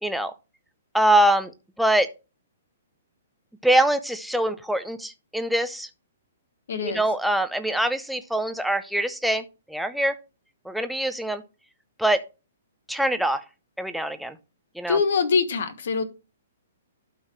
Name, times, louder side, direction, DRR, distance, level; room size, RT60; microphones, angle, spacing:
voice 1, 0.0-0.3 0.9-1.5 1.8-2.1 3.6-5.9 6.8-10.2 10.7-11.4 12.0-12.2 12.9-13.4 13.8-14.4 14.8-15.0, right 1 dB, ahead, 9 dB, 0.5 m, -23 dB
voice 2, 6.7-7.0 14.9-16.0, left 5 dB, 65° left, 11 dB, 1.4 m, -23 dB
12.0 x 4.7 x 3.1 m, 0.29 s
hypercardioid pair, 165°, 0 cm